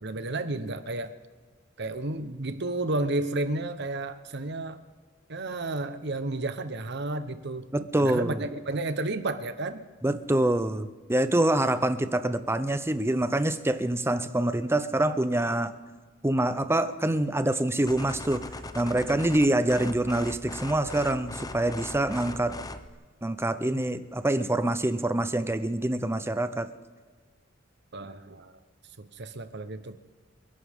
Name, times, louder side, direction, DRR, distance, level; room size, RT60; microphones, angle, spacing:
voice 1, 0.0-1.1 1.8-4.8 5.3-7.7 8.0-9.8 27.9-28.5 29.0-30.0, right 2 dB, 60° right, 10 dB, 1.1 m, -32 dB
voice 2, 7.7-8.4 10.0-15.7 16.2-18.4 18.7-22.5 23.2-26.7, right 1 dB, 15° right, 12 dB, 0.7 m, -26 dB
sound 1, 17.9-22.9, left 2 dB, 20° left, 0.8 m, -40 dB
28.5 x 11.5 x 3.7 m, 1.5 s
head